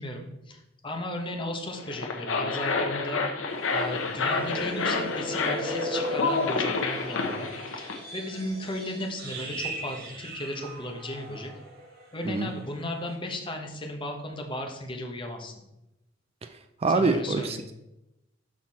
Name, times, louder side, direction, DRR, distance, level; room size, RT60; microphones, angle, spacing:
voice 1, 0.0-3.2 3.7-11.5 12.1-15.5 16.9-17.6, left 1 dB, 25° left, 3 dB, 1.0 m, -35 dB
sound 1, 1.8-8.0, left 4 dB, 90° left, 0.8 m, -29 dB
sound 2, 3.5-12.1 12.4-12.6 13.0-13.2, equal, 55° right, 1.5 m, -38 dB
voice 2, 16.8-17.7, right 3 dB, 30° right, 9 dB, 0.3 m, -25 dB
6.3 x 5.9 x 4.2 m, 0.90 s
head